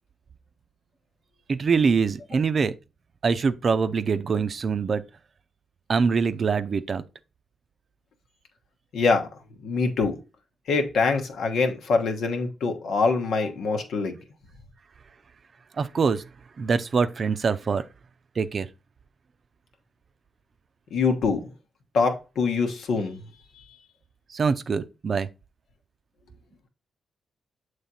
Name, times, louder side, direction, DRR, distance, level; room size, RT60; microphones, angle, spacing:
voice 1, 1.5-2.7 3.2-5.0 5.9-7.0 15.8-16.2 16.6-17.8 18.4-18.7 24.3-25.3, right 5 dB, 50° right, 0.5 m, -24 dB
voice 2, 8.9-9.3 9.6-10.2 10.7-14.2 20.9-21.5 21.9-23.2 23.6-23.7, left 4 dB, 80° left, 1.2 m, -24 dB
7.2 x 3.2 x 4.1 m
cardioid pair, 70°, 0 cm